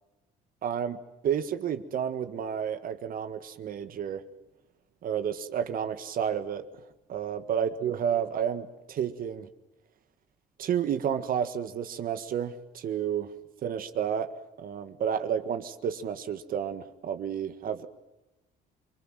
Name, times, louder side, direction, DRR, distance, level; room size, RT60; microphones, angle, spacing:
voice 1, 0.6-1.0 1.2-4.2 5.0-6.6 7.1-9.5 10.6-13.3 13.6-14.3 14.6-17.9, right 8 dB, 55° right, 9 dB, 1.8 m, -31 dB
28.5 x 22.0 x 7.6 m, 1.0 s
cardioid pair, 110°, 17 cm